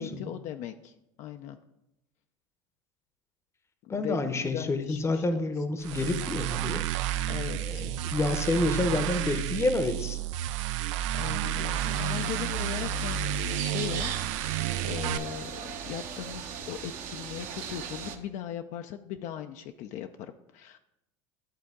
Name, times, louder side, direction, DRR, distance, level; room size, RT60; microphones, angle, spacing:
voice 1, 0.0-1.6 3.8-5.6 5.9-6.0 7.3-7.9 11.1-13.3 13.6-14.1 14.4-20.8, left 10 dB, 55° left, 7 dB, 0.4 m, -39 dB
voice 2, 3.9-6.9 7.6-10.2, left 2 dB, 15° left, 9 dB, 0.7 m, -29 dB
sound 1, 5.8-15.2, right 11 dB, 80° right, 0.4 m, -31 dB
sound 2, 11.8-18.2, right 8 dB, 60° right, 0.9 m, -38 dB
11.0 x 3.7 x 3.6 m, 0.85 s
supercardioid pair, 105°, 15 cm